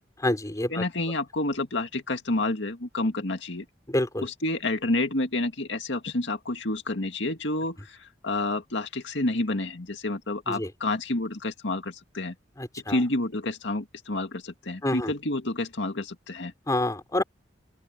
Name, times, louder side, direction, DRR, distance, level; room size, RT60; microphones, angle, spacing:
voice 1, 0.2-0.8 3.9-4.2 10.5-10.7 12.6-13.0 14.8-15.1 16.7-17.2, left 1 dB, 20° left, 3.4 m, -27 dB
voice 2, 0.7-3.7 4.2-12.3 12.9-16.5, left 2 dB, 75° left, 2.1 m, -29 dB
open air
head